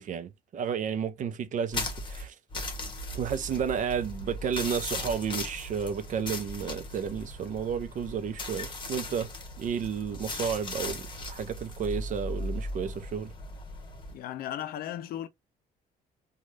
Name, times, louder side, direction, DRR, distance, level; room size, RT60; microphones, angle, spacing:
voice 1, 0.0-2.3 3.1-9.3 9.6-13.3, right 7 dB, 50° right, 0.6 m, -32 dB
sound 1, 1.7-14.2, left 2 dB, 30° left, 1.1 m, -38 dB
voice 2, 14.1-15.3, left 11 dB, 65° left, 0.5 m, -36 dB
3.1 x 2.4 x 2.5 m
cardioid pair, 110°, 17 cm